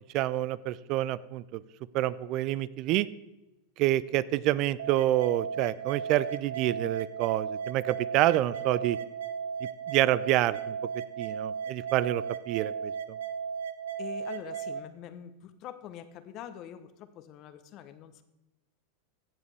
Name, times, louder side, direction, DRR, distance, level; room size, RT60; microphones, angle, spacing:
voice 1, 0.1-1.6 1.9-3.1 3.8-9.0 9.9-10.8 11.2-12.9, right 14 dB, 50° right, 20 dB, 0.3 m, -27 dB
sound 1, 4.8-14.8, right 6 dB, 80° right, 0.7 m, -36 dB
voice 2, 14.0-18.2, left 10 dB, 45° left, 11 dB, 0.8 m, -44 dB
15.0 x 7.2 x 3.4 m, 0.96 s
hypercardioid pair, 105°, 0 cm